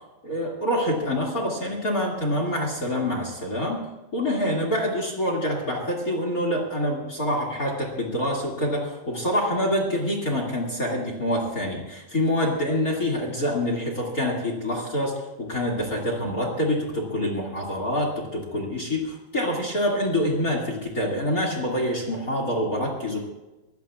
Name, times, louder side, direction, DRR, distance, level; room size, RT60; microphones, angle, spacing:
voice 1, 0.2-3.8 4.1-23.2, left 1 dB, 35° left, 1 dB, 1.4 m, -26 dB
24.5 x 18.5 x 2.4 m, 1.1 s
omnidirectional pair, 5.4 m